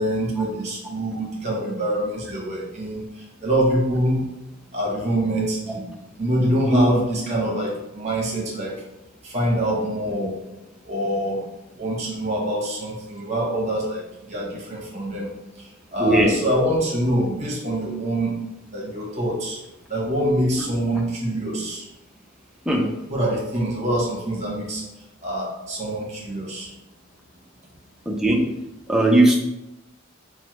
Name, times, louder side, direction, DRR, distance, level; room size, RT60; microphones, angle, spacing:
voice 1, 0.0-3.0 3.4-4.2 4.7-5.8 6.2-8.7 9.2-10.4 10.8-11.4 11.8-15.3 15.9-18.3 18.7-19.6 19.9-21.8 23.1-24.8 25.2-26.7, right 1 dB, 35° right, -3 dB, 0.8 m, -25 dB
voice 2, 16.0-16.3 22.7-22.9 28.1-28.4 28.9-29.4, right 1 dB, 5° right, -1 dB, 0.3 m, -17 dB
3.1 x 2.0 x 2.9 m, 0.92 s
head